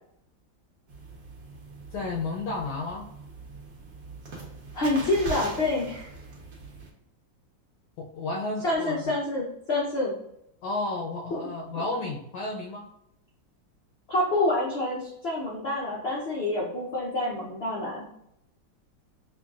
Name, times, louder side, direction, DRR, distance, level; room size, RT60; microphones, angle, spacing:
sound 1, 0.9-6.9, right 3 dB, 55° right, 1.2 m, -41 dB
voice 1, 1.9-3.1 8.0-9.1 10.6-12.9, left 2 dB, 75° left, -1 dB, 1.1 m, -32 dB
voice 2, 4.7-6.1 8.6-10.1 11.3-11.5 11.7-11.8 14.1-18.0, left 2 dB, 90° left, -4 dB, 0.5 m, -27 dB
5.5 x 2.3 x 2.3 m, 0.80 s
omnidirectional pair, 2.1 m